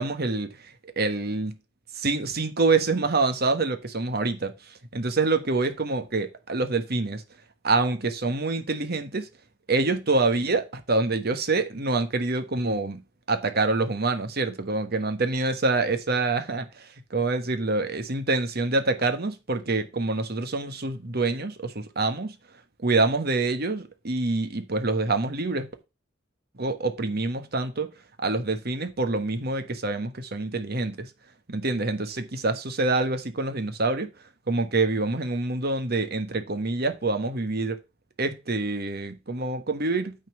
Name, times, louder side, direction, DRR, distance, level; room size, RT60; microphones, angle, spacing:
voice 1, 0.0-1.6 1.9-4.5 4.9-7.2 7.6-9.3 9.7-13.0 13.3-22.3 22.8-25.7 26.6-27.9 28.2-31.1 31.5-34.1 34.5-37.8 38.2-40.1, right 3 dB, 55° right, 1.3 m, -26 dB
9.5 x 4.2 x 6.8 m
head